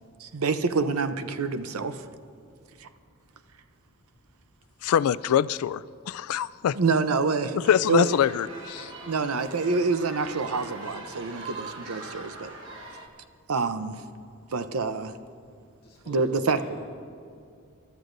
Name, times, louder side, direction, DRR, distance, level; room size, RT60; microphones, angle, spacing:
voice 1, 0.2-2.0 2.8-2.9 6.8-7.6 7.9-8.1 9.1-12.5 13.5-14.0 14.5-15.2 16.1-16.6, right 4 dB, 85° right, 0.7 m, -27 dB
voice 2, 4.8-6.8 7.5-8.9, left 9 dB, 85° left, 0.3 m, -24 dB
sound 1, 8.0-13.1, right 3 dB, 60° right, 1.3 m, -41 dB
voice 3, 15.8-16.8, equal, 25° left, 2.1 m, -48 dB
27.0 x 12.5 x 2.6 m
head